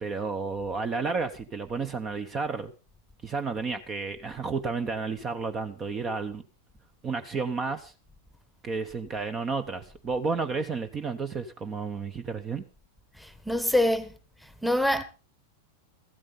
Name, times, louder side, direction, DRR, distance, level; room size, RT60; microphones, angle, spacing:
voice 1, 0.0-2.7 3.2-6.4 7.0-7.9 8.6-12.6, right 4 dB, 25° right, 1.0 m, -31 dB
voice 2, 13.2-14.1 14.4-15.0, left 1 dB, ahead, 1.3 m, -25 dB
15.0 x 12.5 x 4.1 m
figure-of-eight pair, 90°, 0 cm